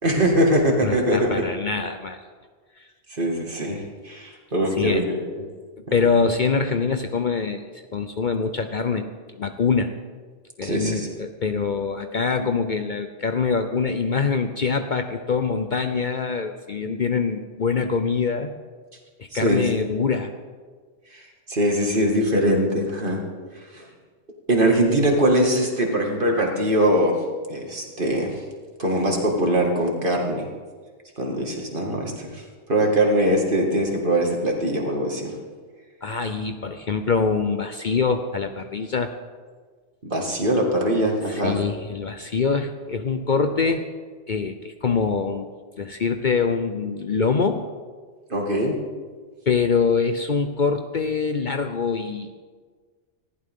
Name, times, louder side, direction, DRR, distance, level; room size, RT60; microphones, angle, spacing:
voice 1, 0.0-1.5 3.1-5.5 5.9-6.0 10.6-11.1 19.3-19.7 21.1-23.2 23.6-23.8 24.5-27.2 27.5-28.4 28.8-30.5 31.2-32.4 32.7-35.4 40.0-41.6 48.3-48.8, right 1 dB, 45° right, 0 dB, 2.4 m, -22 dB
voice 2, 0.8-2.2 4.8-5.0 5.9-7.6 7.9-9.0 9.4-10.0 10.6-18.5 19.2-20.3 36.0-39.1 41.3-43.9 44.3-45.5 45.8-47.6 49.5-52.4, left 5 dB, 50° left, 7 dB, 0.8 m, -24 dB
20.0 x 14.5 x 3.7 m, 1.5 s
omnidirectional pair, 1.2 m